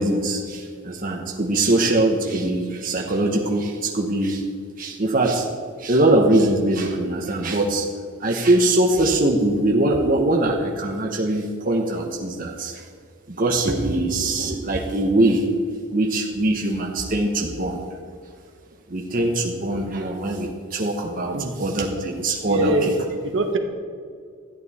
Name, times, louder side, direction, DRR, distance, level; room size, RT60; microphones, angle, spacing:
voice 1, 0.0-4.4 4.8-5.5 5.8-7.9 8.2-12.9 13.3-15.5 15.9-17.8 18.9-22.7, right 1 dB, 40° right, 0 dB, 0.9 m, -22 dB
voice 2, 22.4-23.6, right 1 dB, 65° right, 5 dB, 1.2 m, -23 dB
13.5 x 9.0 x 4.2 m, 2.2 s
head